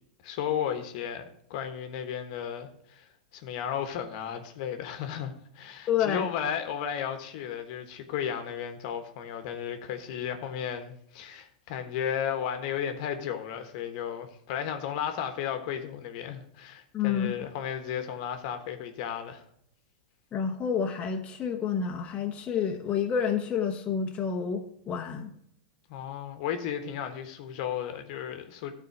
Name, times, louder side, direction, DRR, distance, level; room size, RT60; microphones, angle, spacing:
voice 1, 0.2-3.1 3.3-19.4 25.9-28.7, left 9 dB, 55° left, 7 dB, 1.2 m, -34 dB
voice 2, 5.9-6.3 16.9-17.3 20.3-25.3, left 7 dB, 30° left, 2 dB, 1.0 m, -29 dB
13.0 x 4.4 x 4.6 m, 0.71 s
hypercardioid pair, 110°, 4 cm